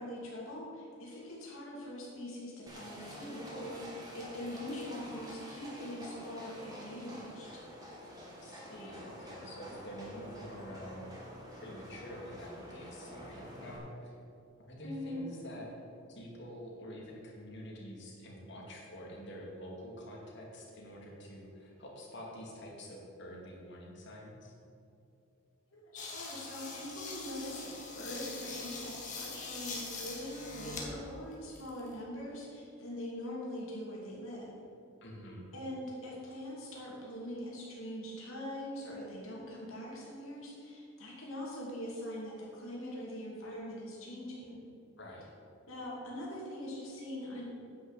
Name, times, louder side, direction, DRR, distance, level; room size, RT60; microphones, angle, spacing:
voice 1, 0.0-7.6 14.8-15.3 25.7-34.6 35.5-44.6 45.7-47.4, left 1 dB, 75° left, -4 dB, 2.8 m, -42 dB
Livestock farm animals working animals, 2.7-13.8, equal, 20° right, 2.4 m, -48 dB
voice 2, 8.4-11.1 11.6-14.1 14.6-15.7 16.1-24.5 35.0-35.5 45.0-45.3, equal, 55° left, -2 dB, 2.5 m, -47 dB
sound 1, 26.0-30.9 31.3-32.0, left 4 dB, 35° left, 1.8 m, -43 dB
10.0 x 6.4 x 8.2 m, 2.6 s
head